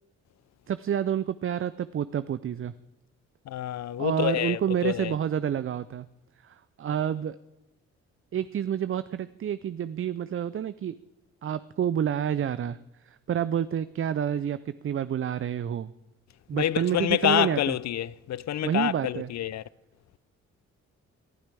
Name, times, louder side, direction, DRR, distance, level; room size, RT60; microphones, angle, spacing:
voice 1, 0.7-2.7 4.0-6.1 6.4-7.4 8.3-10.9 11.4-12.8 13.1-15.9 16.5-17.7 18.6-19.3, right 9 dB, 40° right, 0.5 m, -29 dB
voice 2, 3.5-5.1 16.5-19.6, left 12 dB, 50° left, 0.5 m, -27 dB
20.5 x 11.5 x 3.4 m
hypercardioid pair, 45°, 35 cm